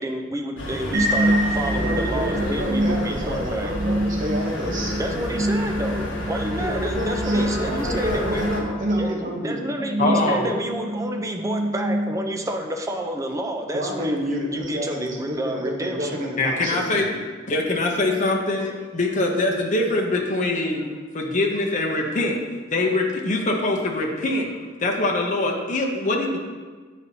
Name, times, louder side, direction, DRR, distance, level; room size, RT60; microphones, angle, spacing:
voice 1, 0.0-3.7 5.0-8.4 8.9-14.2 14.5-16.2, right 1 dB, 15° right, 3 dB, 0.5 m, -29 dB
sound 1, 0.6-8.6, equal, 70° left, 1.2 m, -30 dB
sound 2, 0.9-12.6, right 1 dB, 85° right, 1.1 m, -26 dB
voice 2, 1.5-4.9 6.6-9.6 10.0-10.5 13.7-17.2, equal, 45° right, -2 dB, 0.9 m, -29 dB
voice 3, 10.0-10.5 16.4-17.1 17.5-20.8 21.1-22.4 22.7-24.5 24.8-26.4, left 2 dB, 40° left, 0 dB, 0.7 m, -23 dB
8.9 x 4.1 x 2.7 m, 1.4 s
head